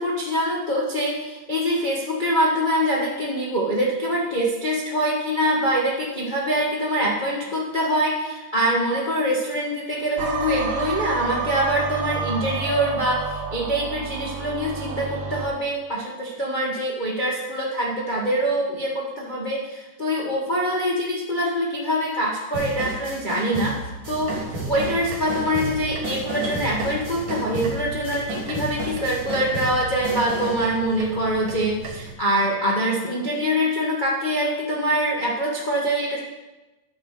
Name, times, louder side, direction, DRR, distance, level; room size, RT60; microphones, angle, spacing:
voice 1, 0.0-24.3 24.7-36.2, equal, 70° left, -4 dB, 0.4 m, -24 dB
sound 1, 10.2-15.5, right 5 dB, 80° right, 2.1 m, -29 dB
sound 2, 22.5-30.7, right 1 dB, 30° right, 3.3 m, -32 dB
sound 3, 24.0-32.2, right 5 dB, 65° right, 2.1 m, -37 dB
10.5 x 6.4 x 4.9 m, 1.1 s
omnidirectional pair, 3.4 m